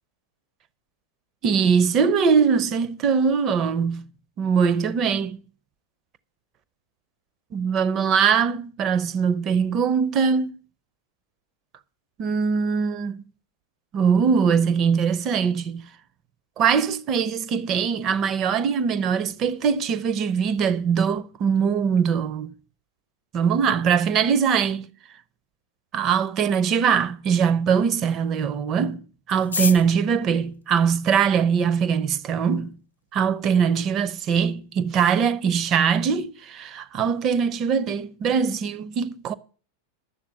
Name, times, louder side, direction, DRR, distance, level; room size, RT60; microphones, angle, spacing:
voice 1, 1.4-4.1 4.4-5.4 7.5-10.5 12.2-13.2 13.9-15.9 16.6-22.5 23.3-24.9 25.9-29.0 29.3-32.7 33.1-39.3, right 6 dB, 35° right, 0.7 m, -22 dB
sound 1, 29.3-31.6 32.4-32.5 32.7-32.8 33.1-33.6 33.9-34.0 34.2-34.6 34.9-35.1 35.4-35.7, left 4 dB, 75° left, 0.6 m, -32 dB
11.0 x 7.3 x 7.7 m
figure-of-eight pair, 90°, 0 cm